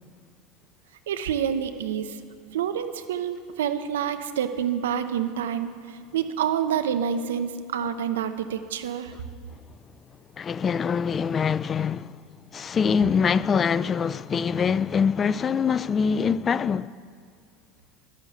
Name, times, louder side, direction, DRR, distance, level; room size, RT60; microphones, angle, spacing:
voice 1, 1.1-2.2 2.5-9.1, right 8 dB, 80° right, 0.9 m, -28 dB
voice 2, 10.4-12.2 12.5-16.9, left 6 dB, 30° left, 0.4 m, -24 dB
12.5 x 12.0 x 8.1 m
hypercardioid pair, 85°, 0 cm